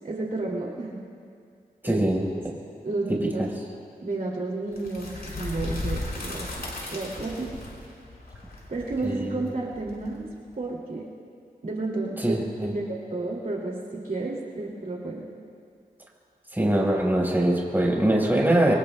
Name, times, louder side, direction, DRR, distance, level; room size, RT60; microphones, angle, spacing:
voice 1, 0.0-1.0 1.8-2.0 2.8-3.5 4.0-6.5 6.9-7.6 8.7-10.3 10.6-11.0 11.6-13.8 14.0-15.2, right 2 dB, 65° right, -3 dB, 2.4 m, -31 dB
voice 2, 1.8-2.2 9.0-9.4 12.2-12.8 16.5-18.7, right 1 dB, 15° right, -3 dB, 4.4 m, -23 dB
sound 1, 4.7-10.5, left 2 dB, 80° left, 4.3 m, -36 dB
27.5 x 23.5 x 2.2 m, 2.4 s
wide cardioid pair, 65°, 16 cm